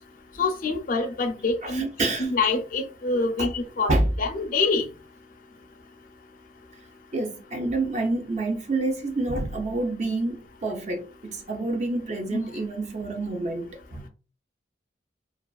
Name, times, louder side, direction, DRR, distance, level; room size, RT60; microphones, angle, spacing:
voice 1, 0.4-1.9 2.2-4.8, left 3 dB, 45° left, 0.4 m, -26 dB
voice 2, 1.6-2.3 3.4-3.5 3.9-4.1 7.1-14.1, right 2 dB, 40° right, 0.5 m, -28 dB
2.3 x 2.3 x 2.2 m
head